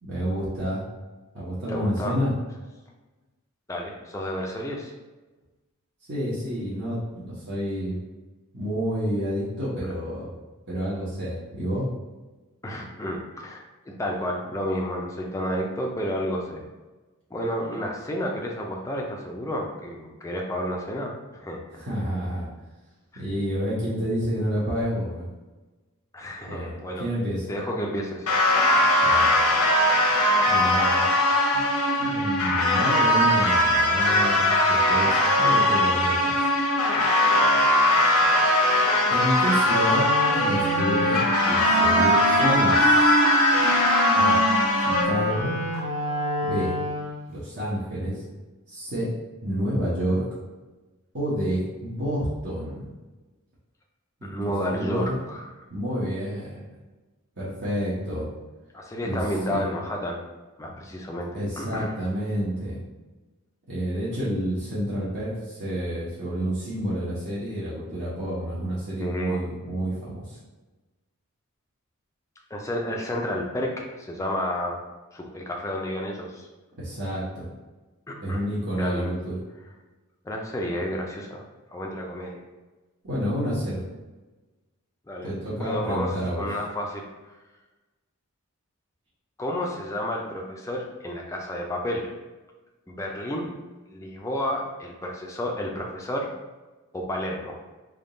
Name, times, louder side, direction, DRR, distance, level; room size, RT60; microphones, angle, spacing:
voice 1, 0.0-0.8 1.3-2.3 6.1-8.0 8.5-10.3 10.7-11.9 21.7-22.5 23.1-25.3 26.4-26.7 27.0-27.5 29.0-29.3 30.4-31.1 31.5-31.6 32.0-36.4 39.1-40.0 40.4-43.2 44.1-44.4 44.8-45.5 46.4-46.7 47.3-48.2 48.7-49.1 49.4-50.3 51.1-52.9 54.7-55.2 55.7-56.6 57.4-58.3 59.0-59.2 59.5-59.6 61.3-62.8 63.7-70.4 76.8-77.5 78.2-79.4 83.0-83.8 85.2-86.5, equal, 50° right, -9 dB, 0.9 m, -29 dB
voice 2, 1.7-2.2 3.7-4.9 12.6-16.6 17.3-21.6 23.1-23.2 26.1-27.1 27.5-28.3 32.0-32.3 54.2-55.6 58.7-60.2 60.6-62.0 69.0-69.4 72.5-74.8 75.1-76.5 78.1-78.4 78.8-79.1 80.2-81.4 81.7-82.4 85.1-85.3 85.6-87.0 89.4-92.1 92.9-93.5 93.9-96.3 96.9-97.6, equal, 15° left, 0 dB, 0.4 m, -31 dB
sound 1, 28.3-45.0, left 1 dB, 80° left, 0.8 m, -20 dB
Wind instrument woodwind instrument, 39.9-47.3, equal, 80° right, 1.2 m, -26 dB
3.6 x 2.3 x 3.8 m, 1.2 s
head